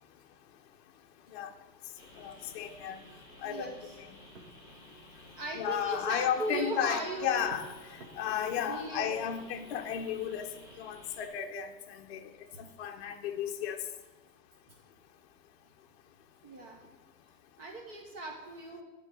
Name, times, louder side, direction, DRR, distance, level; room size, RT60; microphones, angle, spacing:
sound 1, 2.0-11.3, equal, 5° right, 1.3 m, -55 dB
voice 1, 2.2-3.0 3.4-3.7 5.5-7.7 8.2-10.5 10.8-12.2 12.8-13.8, left 9 dB, 40° left, 0.7 m, -33 dB
voice 2, 3.4-3.9 5.4-7.5 8.7-9.4 12.5-12.6 14.7-14.8 16.4-16.8 17.6-18.8, right 2 dB, 35° right, 1.1 m, -38 dB
10.5 x 3.8 x 6.5 m
hypercardioid pair, 150°, 49 cm